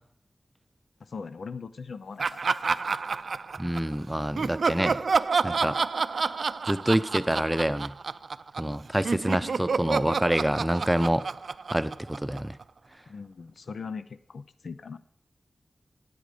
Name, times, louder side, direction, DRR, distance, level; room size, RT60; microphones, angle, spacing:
voice 1, 1.0-2.5 13.1-15.0, left 5 dB, 85° left, 13 dB, 0.6 m, -40 dB
Laughter, 2.2-3.9 4.4-8.8 9.0-12.6, right 4 dB, 80° right, 0.4 m, -29 dB
voice 2, 3.6-5.0 5.4-5.8 6.7-7.9 8.6-11.2 11.7-12.6, right 1 dB, 15° right, 13 dB, 0.7 m, -27 dB
17.0 x 8.0 x 5.1 m, 0.68 s
cardioid pair, 45°, 0 cm